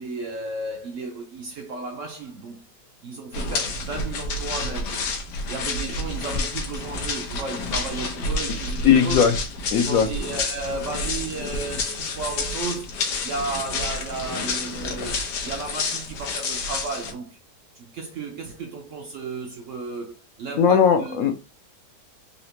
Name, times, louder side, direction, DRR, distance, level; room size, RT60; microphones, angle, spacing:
voice 1, 0.0-2.6 3.0-5.1 5.5-9.2 9.8-17.4 17.8-21.2, right 4 dB, 65° right, 0.8 m, -34 dB
Footsteps on rocky beach, 3.3-17.1, left 3 dB, 90° left, 1.4 m, -29 dB
voice 2, 8.8-9.4 9.7-10.1 20.6-21.4, left 7 dB, 70° left, 0.9 m, -18 dB
4.2 x 2.8 x 2.8 m
omnidirectional pair, 1.8 m